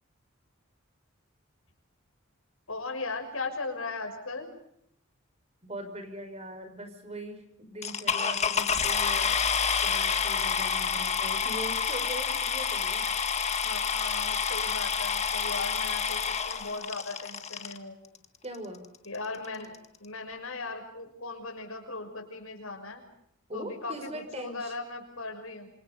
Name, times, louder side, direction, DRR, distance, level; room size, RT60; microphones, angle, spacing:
voice 1, 2.7-4.5 13.1-13.2 13.6-18.0 19.0-23.0 23.5-25.7, left 3 dB, 85° left, 5 dB, 6.2 m, -38 dB
voice 2, 5.6-9.4 9.8-13.0 18.4-18.9 23.5-24.7, right 1 dB, 30° right, 7 dB, 5.8 m, -41 dB
sound 1, 7.8-17.8 18.5-18.6 19.1-19.2 19.4-19.8, left 6 dB, 35° left, 1.8 m, -28 dB
28.0 x 26.5 x 5.4 m, 0.74 s
head